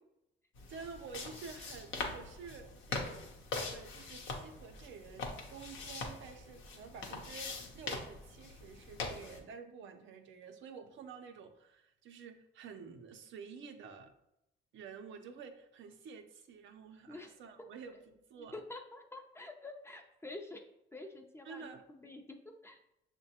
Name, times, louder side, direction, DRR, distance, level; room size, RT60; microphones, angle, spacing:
sound 1, 0.5-9.4, left 3 dB, 75° left, 0.7 m, -43 dB
voice 1, 0.7-3.4 3.7-14.1 14.7-18.6 21.4-21.9, right 5 dB, 75° right, 6 dB, 0.5 m, -50 dB
voice 2, 18.5-20.6 20.9-22.8, left 2 dB, 10° left, 4 dB, 0.5 m, -48 dB
6.3 x 2.1 x 2.8 m, 0.84 s
cardioid pair, 90°, 20 cm